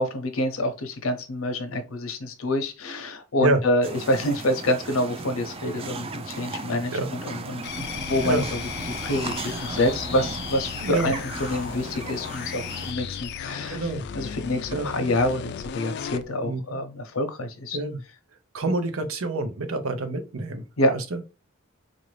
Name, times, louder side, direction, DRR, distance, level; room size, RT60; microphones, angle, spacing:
voice 1, 0.0-8.6 9.0-17.8 20.8-20.9, left 1 dB, 80° left, 8 dB, 0.7 m, -27 dB
sound 1, 3.8-12.9, right 3 dB, 30° right, 0.4 m, -36 dB
sound 2, 7.6-16.3, left 7 dB, 55° left, 0.3 m, -35 dB
voice 2, 10.8-11.1 13.7-14.0 14.7-14.9 16.4-16.8 17.7-18.0 18.5-21.2, right 2 dB, 90° right, 7 dB, 0.7 m, -27 dB
3.9 x 2.6 x 3.2 m, 0.29 s
head